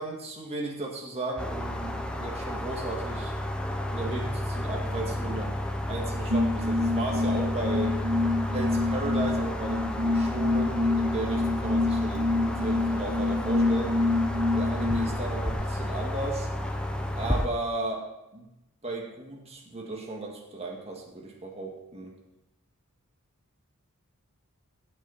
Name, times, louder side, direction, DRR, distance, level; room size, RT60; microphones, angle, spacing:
voice 1, 0.0-3.4 3.9-5.5 5.9-8.0 8.5-14.0 14.5-16.5 17.2-18.1 18.3-18.5 18.8-22.1, right 2 dB, 30° right, -1 dB, 1.9 m, -35 dB
sound 1, 1.4-17.5, left 1 dB, 5° left, 0.8 m, -32 dB
sound 2, 6.3-15.1, left 2 dB, 50° right, 2.1 m, -26 dB
15.5 x 6.4 x 4.2 m, 0.93 s
head